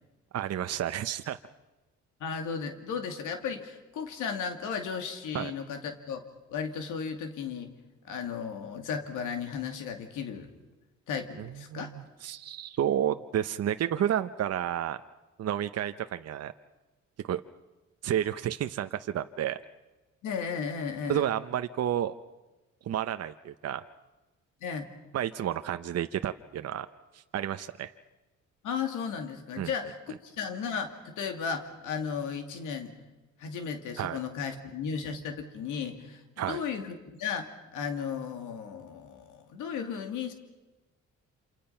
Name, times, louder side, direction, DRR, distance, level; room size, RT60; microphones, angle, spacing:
voice 1, 0.3-1.4 5.3-5.5 11.4-15.0 15.4-16.5 17.2-17.4 18.0-19.6 21.1-22.1 22.8-23.8 25.1-26.9 27.1-27.9 29.6-29.7 34.0-34.2 36.4-36.6, right 10 dB, 55° right, 9 dB, 0.8 m, -31 dB
voice 2, 2.2-6.2 6.5-7.7 8.0-10.5 11.1-11.9 20.2-21.2 24.6-24.8 28.6-30.0 30.2-32.9 33.4-40.3, left 6 dB, 90° left, 6 dB, 2.5 m, -35 dB
28.0 x 27.0 x 5.7 m, 1.1 s
cardioid pair, 90°, 30 cm